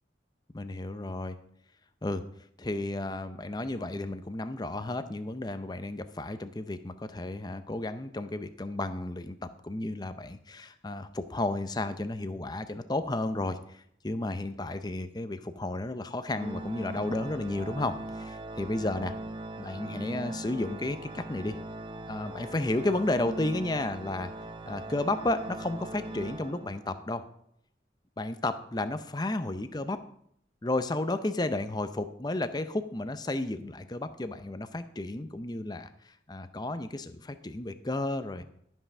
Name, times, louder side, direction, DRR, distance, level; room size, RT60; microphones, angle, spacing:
voice 1, 0.5-1.4 2.0-2.2 2.6-19.1 19.6-21.6 22.1-24.3 24.7-27.2 28.2-30.0 30.6-35.9 36.3-38.4, left 2 dB, 20° left, 10 dB, 0.6 m, -32 dB
Organ, 16.3-27.1, right 2 dB, 25° right, 0.5 m, -40 dB
12.5 x 5.6 x 6.0 m, 0.70 s
head